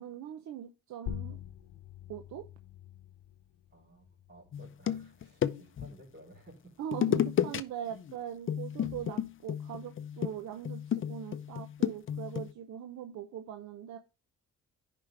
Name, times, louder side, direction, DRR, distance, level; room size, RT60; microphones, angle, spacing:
voice 1, 0.0-1.4 2.1-2.5 6.8-14.0, right 10 dB, 70° right, 7 dB, 0.8 m, -41 dB
sound 1, 1.1-6.1, left 10 dB, 90° left, 0.8 m, -46 dB
voice 2, 3.7-6.8 8.8-9.0, right 1 dB, 35° right, -1 dB, 3.7 m, -56 dB
sound 2, 4.5-5.9 6.9-7.6 7.9-8.1 8.5-12.5, left 9 dB, 40° left, 0.5 m, -32 dB
10.5 x 5.1 x 3.3 m, 0.30 s
cardioid pair, 90°, 30 cm